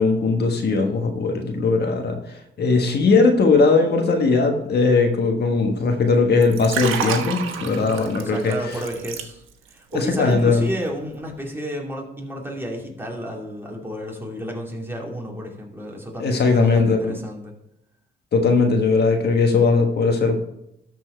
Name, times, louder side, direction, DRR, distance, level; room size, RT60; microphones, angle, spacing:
voice 1, 0.0-8.5 9.9-10.7 16.2-17.1 18.3-20.3, left 4 dB, 55° left, 4 dB, 1.4 m, -19 dB
Liquid, 6.4-9.7 10.0-10.3, right 7 dB, 90° right, 1.2 m, -29 dB
voice 2, 7.6-9.4 9.7-17.5, equal, 10° right, -1 dB, 2.6 m, -31 dB
13.0 x 4.6 x 4.4 m, 0.81 s
cardioid pair, 90°, 20 cm